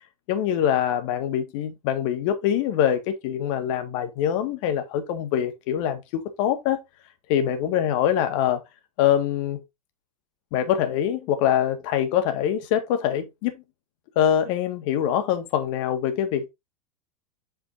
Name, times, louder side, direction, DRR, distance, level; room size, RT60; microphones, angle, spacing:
voice 1, 0.3-6.8 7.3-8.6 9.0-9.6 10.5-13.6 14.2-16.5, left 10 dB, 55° left, 1.9 m, -24 dB
7.9 x 5.7 x 2.7 m
hypercardioid pair, 95°, 20 cm